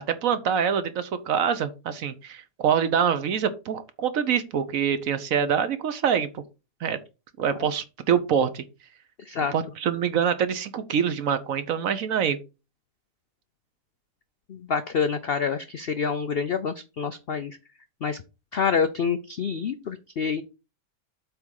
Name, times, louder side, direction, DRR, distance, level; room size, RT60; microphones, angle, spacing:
voice 1, 0.0-6.3 6.8-7.0 7.4-8.6 9.5-12.4, right 7 dB, 60° right, 12 dB, 1.1 m, -25 dB
voice 2, 14.5-17.6 18.0-18.2 18.5-20.4, left 6 dB, 85° left, 11 dB, 0.5 m, -27 dB
8.0 x 3.6 x 6.4 m, 0.29 s
omnidirectional pair, 1.8 m